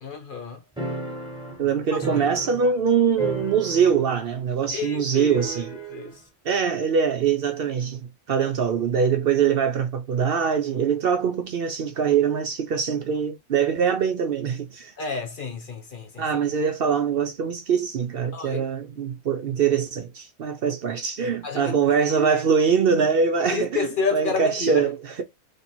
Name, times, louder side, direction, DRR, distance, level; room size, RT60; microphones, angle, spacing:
voice 1, 0.0-0.6 4.7-5.4 5.9-6.1 8.4-8.5 15.0-16.2 18.3-18.6 21.4-21.8 22.1-22.4 23.5-24.9, left 5 dB, 45° left, 1.1 m, -29 dB
sound 1, 0.8-2.9 3.1-4.2 4.4-4.5 5.3-6.1, right 2 dB, 5° right, 1.1 m, -33 dB
voice 2, 1.6-5.7 6.4-14.9 16.2-25.2, right 6 dB, 60° right, 0.7 m, -23 dB
3.3 x 2.8 x 4.3 m
omnidirectional pair, 1.2 m